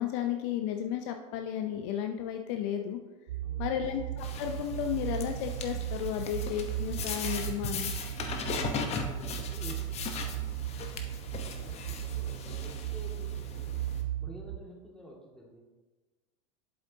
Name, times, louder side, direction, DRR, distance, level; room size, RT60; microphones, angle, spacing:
voice 1, 0.0-3.0 3.6-7.9, left 10 dB, 55° left, 5 dB, 0.6 m, -33 dB
sound 1, 3.3-14.6, right 12 dB, 75° right, 0.5 m, -36 dB
voice 2, 3.4-3.9 8.9-9.9 11.5-13.8 14.2-15.6, equal, 5° left, -3 dB, 2.1 m, -50 dB
sound 2, 4.2-14.0, left 6 dB, 35° left, 0.9 m, -39 dB
7.7 x 7.6 x 2.8 m, 1.2 s
hypercardioid pair, 90°, 18 cm